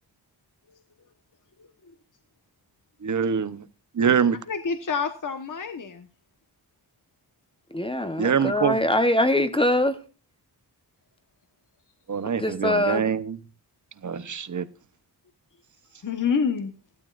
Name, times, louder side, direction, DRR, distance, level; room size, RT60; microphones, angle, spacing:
voice 1, 3.0-3.6 4.0-4.4 8.2-8.8 12.1-13.4 14.0-14.7, right 7 dB, 50° right, 0.9 m, -24 dB
voice 2, 4.5-6.1 16.0-16.7, left 6 dB, 50° left, 1.3 m, -27 dB
voice 3, 7.7-10.0 12.4-13.0, left 1 dB, 15° left, 1.0 m, -23 dB
16.0 x 12.5 x 2.5 m
wide cardioid pair, 145°, 39 cm